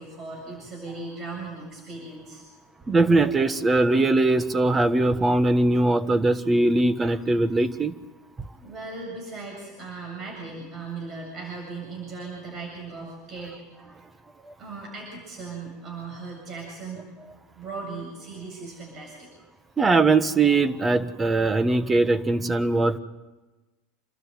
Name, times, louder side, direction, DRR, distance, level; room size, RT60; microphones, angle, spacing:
voice 1, 0.0-2.5 8.6-13.6 14.6-17.2 17.6-19.4, right 3 dB, 40° right, 0 dB, 7.6 m, -38 dB
voice 2, 2.9-7.9 14.4-14.5 19.8-23.0, right 2 dB, 20° right, 13 dB, 1.4 m, -21 dB
28.5 x 13.0 x 9.3 m, 1.2 s
supercardioid pair, 105°, 0 cm